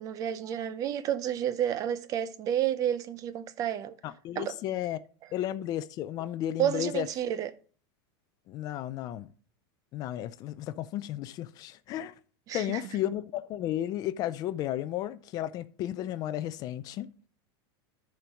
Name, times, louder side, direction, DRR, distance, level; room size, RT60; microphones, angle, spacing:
voice 1, 0.0-4.0 4.4-4.6 6.6-7.5 12.5-12.8, right 10 dB, 30° right, 0.5 m, -30 dB
voice 2, 4.0-5.0 5.3-7.1 8.5-9.3 9.9-12.1 12.5-17.1, left 12 dB, 30° left, 0.4 m, -33 dB
10.5 x 4.5 x 5.2 m
supercardioid pair, 160°, 13 cm